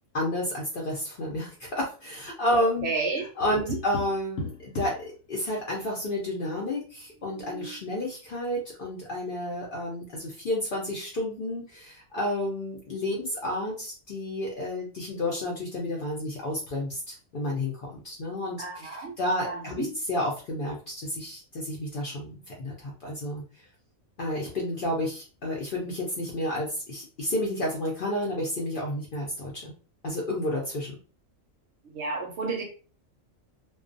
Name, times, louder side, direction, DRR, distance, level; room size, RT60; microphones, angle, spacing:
voice 1, 0.1-2.9 3.2-18.6 18.9-23.4 24.2-29.7 30.0-30.9, left 1 dB, 55° left, -2 dB, 0.6 m, -31 dB
voice 2, 2.8-3.3 3.7-3.8 18.6-19.1 19.4-19.9 31.9-32.6, right 3 dB, 65° right, 2 dB, 0.8 m, -31 dB
Tap, 3.4-5.1 7.1-7.9, left 2 dB, 85° left, 1.0 m, -37 dB
2.2 x 2.2 x 2.5 m, 0.36 s
omnidirectional pair, 1.4 m